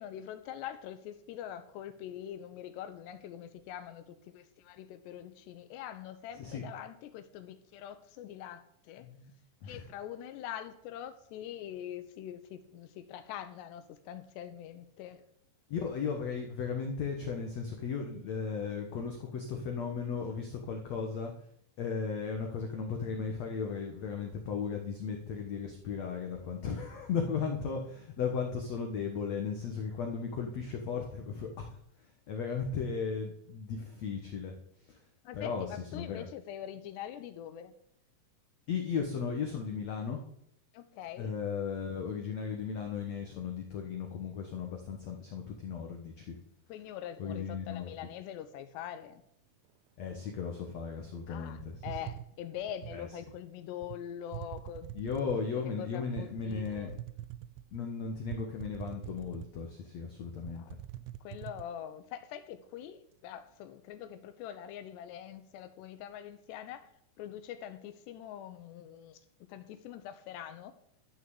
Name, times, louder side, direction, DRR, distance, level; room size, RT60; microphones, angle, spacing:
voice 1, 0.0-9.1 9.6-15.2 35.2-37.7 40.7-41.3 46.7-49.2 51.3-56.9 60.5-60.7 61.2-66.9 67.2-69.2 69.5-70.7, left 10 dB, 85° left, 10 dB, 3.2 m, -44 dB
voice 2, 15.7-21.3 21.8-31.8 32.3-34.5 34.9-35.0 35.3-35.7 35.9-36.3 38.7-40.2 41.2-46.4 47.2-47.9 50.0-51.8 52.9-53.1 54.9-56.9 57.7-60.6, left 6 dB, 60° left, 2 dB, 1.8 m, -36 dB
sound 1, 51.6-53.0 53.8-54.0 54.3-55.5 56.2-57.8 58.3-59.7 60.1-60.2 60.5-61.7, right 13 dB, 90° right, 2.7 m, -44 dB
13.0 x 6.6 x 7.9 m, 0.73 s
omnidirectional pair, 4.8 m